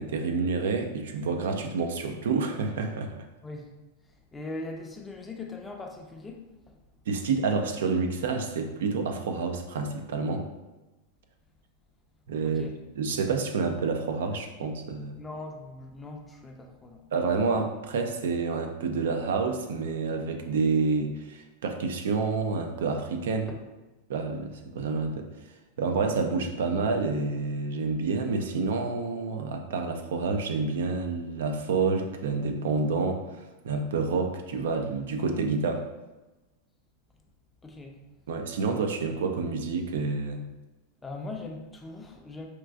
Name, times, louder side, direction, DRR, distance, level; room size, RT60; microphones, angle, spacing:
voice 1, 0.0-3.1 7.1-10.5 12.3-12.6 13.0-15.2 17.1-23.5 24.1-25.3 25.8-33.2 33.6-35.9 38.3-40.4, right 4 dB, 80° right, 4 dB, 0.4 m, -28 dB
voice 2, 4.3-6.8 12.4-12.8 15.2-17.1 23.5-23.6 37.6-38.0 41.0-42.5, left 2 dB, 15° left, 2 dB, 0.5 m, -40 dB
4.4 x 2.5 x 2.3 m, 1.1 s
hypercardioid pair, 125°, 0 cm